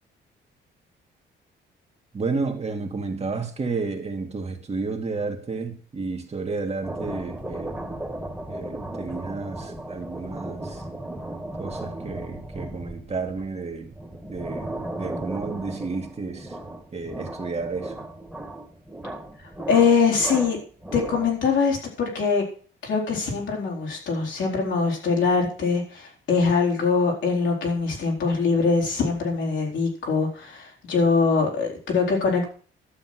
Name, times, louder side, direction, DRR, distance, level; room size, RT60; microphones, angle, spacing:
voice 1, 2.1-7.8 8.5-10.8 11.6-13.9 14.3-14.7 15.0-16.5 16.9-17.9, right 4 dB, 30° right, 3 dB, 2.1 m, -31 dB
sound 1, 6.8-21.5, right 1 dB, 5° right, 2.2 m, -36 dB
voice 2, 19.7-20.6 20.9-22.4 22.8-32.5, left 5 dB, 70° left, 0 dB, 4.2 m, -23 dB
12.0 x 6.9 x 6.1 m, 0.43 s
cardioid pair, 90°, 20 cm